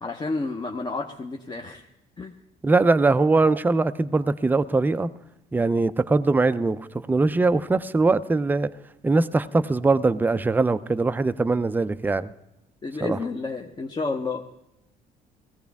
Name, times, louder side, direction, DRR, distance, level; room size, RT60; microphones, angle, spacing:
voice 1, 0.0-1.8 2.2-2.3 12.8-14.4, left 3 dB, 25° left, 3 dB, 0.8 m, -30 dB
voice 2, 2.6-5.1 5.5-8.7 9.0-12.3 13.0-13.2, right 3 dB, 10° right, 12 dB, 0.4 m, -21 dB
18.0 x 14.5 x 3.5 m, 0.87 s
cardioid pair, 110°, 17 cm